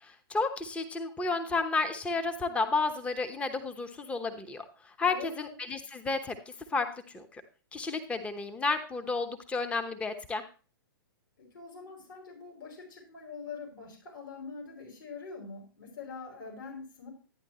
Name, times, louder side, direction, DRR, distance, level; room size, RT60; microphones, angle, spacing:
voice 1, 0.0-6.4 6.7-6.9 7.1-7.4 7.7-10.4, left 3 dB, 10° left, 7 dB, 1.0 m, -32 dB
voice 2, 5.1-5.5 11.4-17.1, left 4 dB, 65° left, -1 dB, 5.6 m, -44 dB
12.0 x 9.8 x 3.0 m, 0.37 s
figure-of-eight pair, 110°, 12 cm